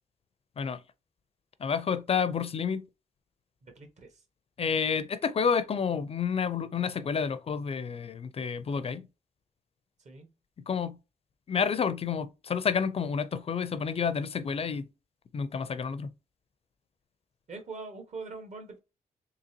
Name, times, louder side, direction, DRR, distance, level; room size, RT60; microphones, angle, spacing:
voice 1, 1.6-2.8 4.6-9.1 10.7-11.0 11.5-14.9 15.3-16.1, left 6 dB, 45° left, 0.4 m, -29 dB
voice 2, 3.6-4.1 10.0-10.3 17.5-18.8, right 3 dB, 55° right, 1.2 m, -42 dB
3.8 x 2.8 x 2.8 m
cardioid pair, 80°, 15 cm